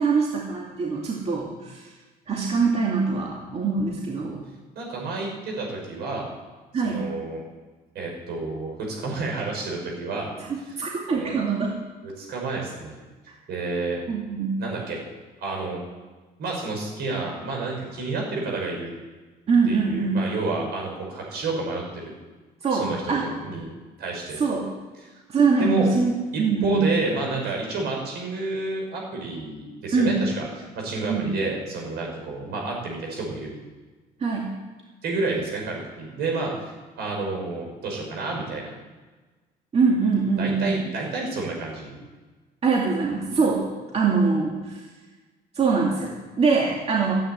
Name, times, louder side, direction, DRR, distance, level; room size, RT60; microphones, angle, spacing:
voice 1, 0.0-1.8 2.3-4.4 6.7-7.0 10.5-11.8 14.1-14.6 19.5-20.2 22.6-23.3 24.4-24.7 25.3-26.1 26.4-26.9 29.9-30.2 31.1-31.3 34.2-34.5 39.7-40.7 42.6-43.7 43.9-44.8 45.6-47.1, right 4 dB, 40° right, -2 dB, 2.4 m, -23 dB
voice 2, 4.7-6.3 6.8-7.4 7.9-10.3 10.8-11.4 12.0-13.0 13.5-14.0 14.6-15.0 15.4-15.8 16.4-18.9 19.7-22.1 22.7-23.7 24.0-24.4 25.0-25.2 25.6-25.9 26.3-33.5 35.0-38.7 40.4-42.0, right 3 dB, 75° right, -1 dB, 6.4 m, -30 dB
13.0 x 9.2 x 9.6 m, 1.3 s
cardioid pair, 110°, 17 cm